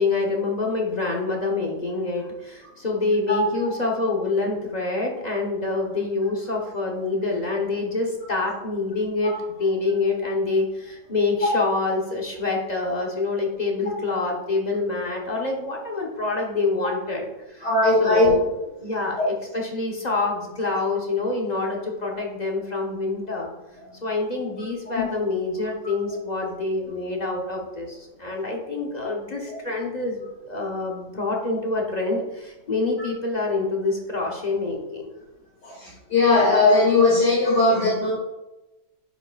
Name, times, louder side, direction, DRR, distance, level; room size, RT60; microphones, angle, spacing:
voice 1, 0.0-17.7 18.0-18.5 18.8-23.5 24.0-35.1, left 3 dB, 35° left, -1 dB, 0.7 m, -26 dB
voice 2, 17.6-18.3 35.6-38.1, left 2 dB, 65° left, -8 dB, 2.8 m, -18 dB
10.0 x 4.9 x 2.4 m, 1.0 s
omnidirectional pair, 1.9 m